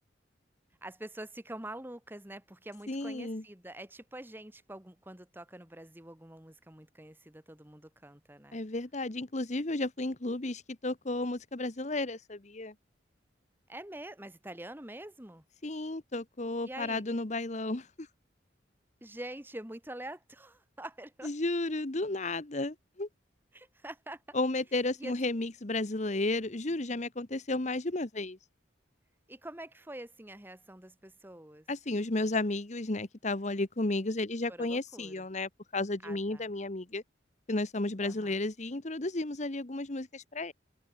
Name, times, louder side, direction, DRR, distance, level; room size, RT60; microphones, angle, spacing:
voice 1, 0.8-8.6 13.7-15.5 16.6-17.0 19.0-21.3 23.5-24.2 25.0-25.1 29.3-31.7 34.5-35.2 36.0-36.4 38.0-38.3, right 1 dB, 10° right, 1.5 m, -45 dB
voice 2, 2.9-3.4 8.5-12.7 15.6-18.1 21.2-23.1 24.3-28.4 31.7-37.0 37.5-40.5, left 2 dB, 40° left, 1.2 m, -33 dB
head